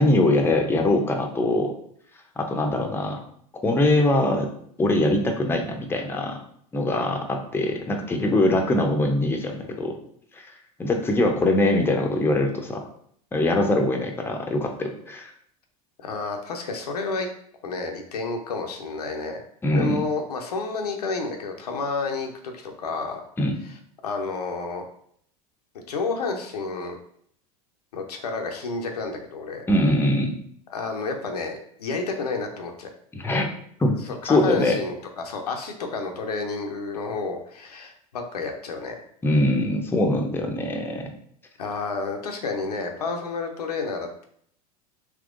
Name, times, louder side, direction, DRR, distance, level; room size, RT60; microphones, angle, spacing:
voice 1, 0.0-1.7 2.4-3.2 3.6-4.5 4.8-6.4 6.7-9.9 10.8-12.9 13.3-15.3 19.6-20.0 23.4-23.6 29.7-30.4 33.1-33.5 33.8-34.0 34.2-34.8 39.2-41.1, left 1 dB, 10° left, 3 dB, 0.5 m, -22 dB
voice 2, 16.0-17.3 17.6-19.4 19.7-23.2 24.0-24.8 25.7-27.0 27.9-29.6 30.7-32.9 34.1-39.0 41.6-44.2, left 3 dB, 90° left, 3 dB, 0.6 m, -30 dB
3.5 x 2.9 x 2.4 m, 0.65 s
hypercardioid pair, 90°, 20 cm